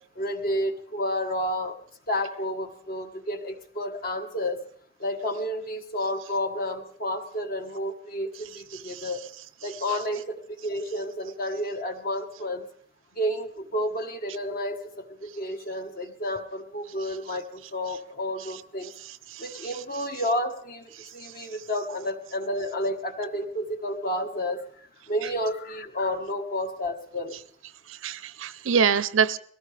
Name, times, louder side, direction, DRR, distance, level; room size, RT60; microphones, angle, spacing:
voice 1, 0.1-1.8 2.1-4.6 5.0-9.2 9.6-12.6 13.1-18.9 19.4-27.3, left 1 dB, 50° left, 5 dB, 1.4 m, -31 dB
voice 2, 19.3-19.7 21.0-21.1 27.9-29.4, right 6 dB, 80° right, 17 dB, 0.6 m, -25 dB
22.0 x 17.0 x 3.4 m, 0.63 s
head